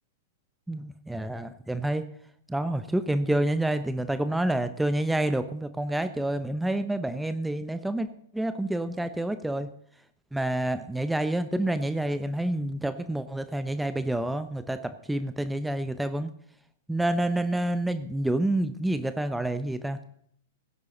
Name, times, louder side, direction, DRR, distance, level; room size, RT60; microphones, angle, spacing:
voice 1, 0.7-2.0 2.5-8.1 8.3-9.7 10.3-16.3 16.9-20.0, right 1 dB, 5° right, 11 dB, 0.9 m, -28 dB
18.0 x 11.0 x 3.9 m, 0.66 s
figure-of-eight pair, 105°, 0 cm